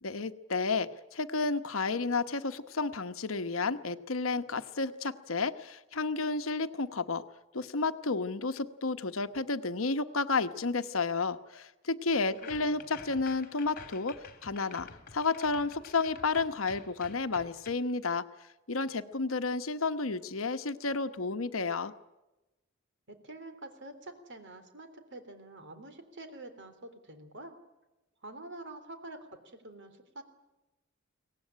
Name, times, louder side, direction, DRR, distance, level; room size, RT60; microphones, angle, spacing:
voice 1, 0.0-7.2 7.5-18.2 18.7-21.9, left 4 dB, 70° left, 10 dB, 1.1 m, -31 dB
sound 1, 12.2-17.7, left 5 dB, 45° left, 3.1 m, -50 dB
voice 2, 12.4-12.8 23.1-27.6 28.2-30.2, right 2 dB, 60° right, 8 dB, 3.4 m, -47 dB
23.5 x 18.0 x 10.0 m, 1.0 s
head